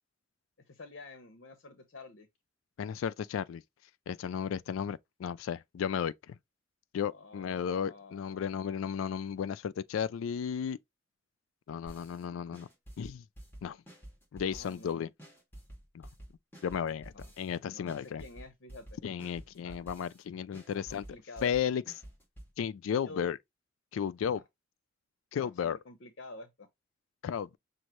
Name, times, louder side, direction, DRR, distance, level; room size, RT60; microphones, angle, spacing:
voice 1, 0.7-2.3 7.1-8.7 14.5-15.1 17.1-17.3 17.7-19.0 19.6-19.8 20.7-21.5 23.0-23.3 24.3-24.4 25.4-26.7, left 3 dB, 65° left, 0.8 m, -49 dB
voice 2, 2.8-3.6 4.1-6.3 6.9-10.8 11.7-12.7 13.0-13.2 13.6-13.8 14.3-15.1 15.9-16.1 16.6-18.2 19.0-21.0 21.4-21.8 22.6-23.4 23.9-24.4 25.3-25.8 27.2-27.6, left 7 dB, 90° left, 0.3 m, -34 dB
sound 1, 11.9-12.2 12.5-14.9 15.2-17.6 17.9-20.2 20.5-22.5, right 1 dB, 10° left, 2.0 m, -50 dB
6.3 x 2.6 x 3.0 m
head